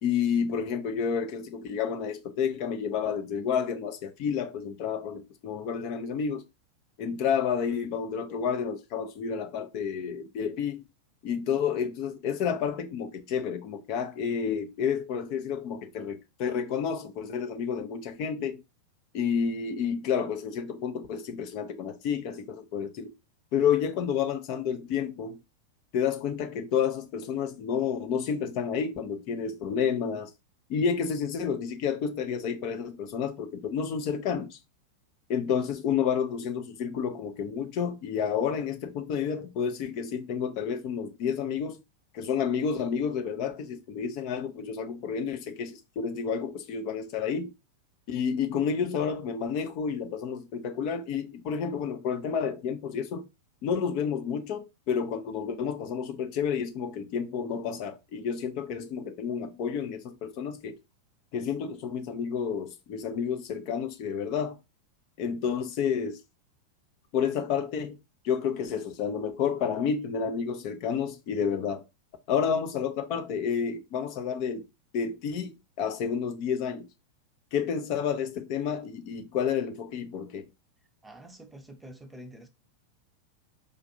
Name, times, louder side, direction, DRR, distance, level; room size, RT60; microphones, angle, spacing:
voice 1, 0.0-6.4 7.0-10.8 11.2-18.6 19.1-23.1 23.5-25.4 25.9-30.3 30.7-34.6 35.3-41.8 42.1-47.5 48.1-53.3 53.6-60.7 61.3-64.6 65.2-66.2 67.1-68.0 68.2-71.8 72.3-74.6 74.9-76.9 77.5-80.4, left 7 dB, 45° left, 0.6 m, -30 dB
voice 2, 81.0-82.5, right 1 dB, 10° right, 0.6 m, -47 dB
5.0 x 2.5 x 2.6 m
figure-of-eight pair, 90°, 0 cm